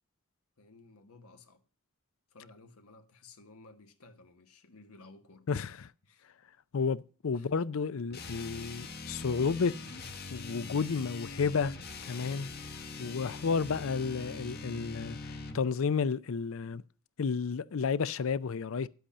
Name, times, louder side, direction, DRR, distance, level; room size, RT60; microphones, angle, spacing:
voice 1, 0.6-1.6 2.3-5.5 6.0-6.3 7.3-7.5, left 3 dB, 80° left, 1.2 m, -56 dB
voice 2, 5.5-5.9 6.7-9.7 10.3-11.7 12.1-12.5 13.0-16.8 17.2-18.9, left 5 dB, 65° left, 0.5 m, -31 dB
sound 1, 8.1-15.7, left 3 dB, 45° left, 1.1 m, -43 dB
10.0 x 8.0 x 7.2 m
head